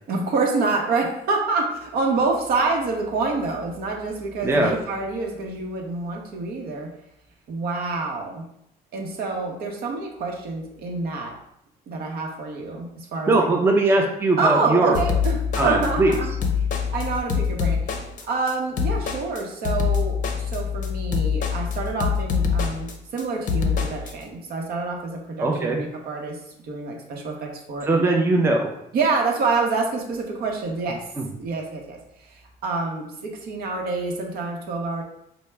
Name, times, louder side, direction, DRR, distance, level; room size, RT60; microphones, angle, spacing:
voice 1, 0.1-6.9 7.5-8.4 8.9-11.3 11.9-13.5 14.4-16.3 16.9-17.9 18.2-26.4 26.6-28.0 28.9-31.0 31.4-35.0, right 3 dB, 65° right, 1 dB, 0.8 m, -27 dB
voice 2, 4.4-4.7 13.3-15.0 15.6-16.1 25.4-25.8 27.9-28.7 31.2-31.3, right 2 dB, 15° right, 0 dB, 0.5 m, -20 dB
sound 1, 14.9-24.1, left 6 dB, 50° left, 0.5 m, -25 dB
4.4 x 2.1 x 3.3 m, 0.77 s
cardioid pair, 110°, 17 cm